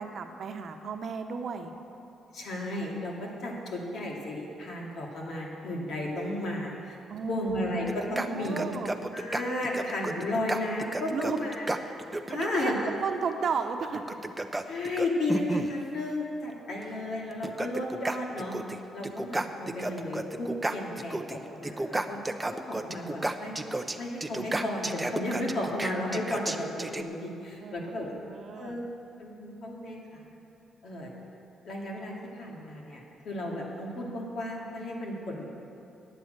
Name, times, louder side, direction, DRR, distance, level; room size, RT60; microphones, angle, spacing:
voice 1, 0.0-1.7 7.1-7.5 8.1-8.9 11.1-11.4 12.3-12.7 13.0-14.0 27.6-27.9 28.3-28.8, right 6 dB, 55° right, 6 dB, 1.0 m, -33 dB
voice 2, 2.3-7.0 7.3-8.7 9.1-11.6 12.3-12.8 14.7-18.6 18.9-22.2 22.5-23.6 24.0-28.1 28.5-28.8 29.2-30.2 30.8-31.1 31.6-35.5, left 1 dB, 65° left, -2 dB, 2.4 m, -33 dB
sound 1, 7.9-12.7 13.9-15.8 16.8-16.9 17.3-18.8 19.0-21.4 21.6-27.0, right 2 dB, 15° right, 0.6 m, -32 dB
10.0 x 8.7 x 7.9 m, 2.8 s
cardioid pair, 90°, 0 cm